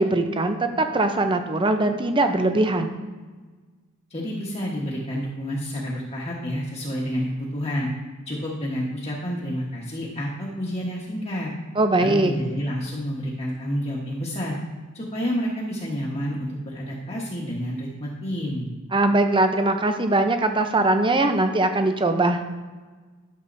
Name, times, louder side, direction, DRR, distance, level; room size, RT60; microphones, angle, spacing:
voice 1, 0.0-2.9 11.8-12.3 18.9-22.4, right 2 dB, 20° right, 7 dB, 0.6 m, -21 dB
voice 2, 4.1-7.9 8.3-11.5 12.0-14.6 14.9-18.7, equal, 30° left, -4 dB, 1.3 m, -29 dB
12.5 x 7.3 x 2.7 m, 1.4 s
head